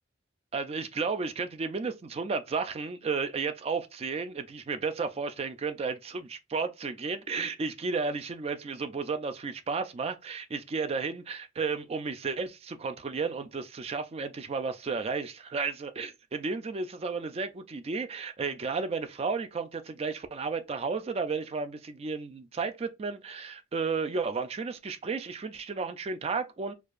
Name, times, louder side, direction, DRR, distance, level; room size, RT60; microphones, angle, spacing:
voice 1, 0.5-26.7, right 4 dB, 30° right, 0.3 m, -33 dB
4.5 x 2.4 x 2.4 m
head